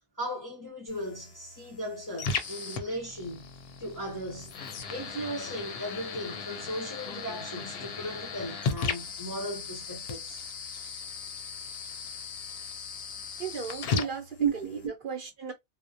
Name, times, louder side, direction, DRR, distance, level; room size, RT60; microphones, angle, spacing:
voice 1, 0.2-3.5 3.8-4.6 4.9-10.4 13.9-14.1 14.4-14.5, right 2 dB, 20° left, 0.5 m, -36 dB
sound 1, 0.9-14.9, left 5 dB, 65° left, 0.7 m, -37 dB
voice 2, 13.4-14.2 14.5-15.5, right 6 dB, 55° right, 0.8 m, -36 dB
2.3 x 2.0 x 2.6 m
omnidirectional pair, 1.2 m